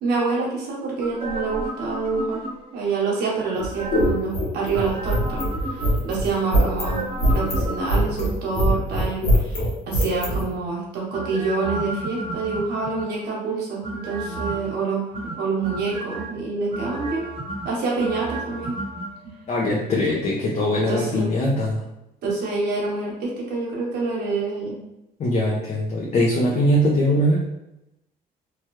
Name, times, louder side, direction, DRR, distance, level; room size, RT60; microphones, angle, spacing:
voice 1, 0.0-2.4 2.7-9.6 9.9-15.1 15.4-17.3 17.6-18.8 20.1-20.2 20.8-21.3 22.2-24.8, right 4 dB, 75° right, -3 dB, 1.1 m, -27 dB
sound 1, 1.0-2.8 3.6-4.3 4.7-6.2 6.6-8.3 11.1-13.2 13.8-14.7 15.1-16.3 16.7-19.1 19.4-19.5, right 1 dB, 35° right, 0.9 m, -32 dB
sound 2, 3.5-10.4, equal, 80° left, 1.0 m, -22 dB
voice 2, 19.5-21.8 25.2-27.4, left 1 dB, 40° left, -3 dB, 0.7 m, -21 dB
2.9 x 2.3 x 3.1 m, 0.88 s
cardioid pair, 110°, 17 cm